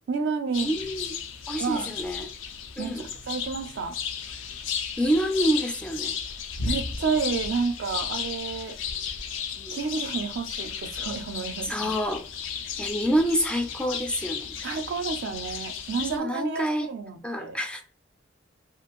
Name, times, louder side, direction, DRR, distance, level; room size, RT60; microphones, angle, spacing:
voice 1, 0.1-0.7 1.6-1.9 2.8-4.0 6.6-8.8 9.7-11.9 14.6-17.6, right 5 dB, 65° right, 0.4 m, -30 dB
sound 1, 0.5-16.2, left 7 dB, 75° left, 0.4 m, -34 dB
voice 2, 0.6-1.2 1.5-2.3 2.8-3.1 5.0-6.2 9.6-9.8 11.6-12.2 12.8-14.5 16.0-16.9 17.2-17.8, equal, 5° left, 0.3 m, -27 dB
2.5 x 2.5 x 2.9 m
head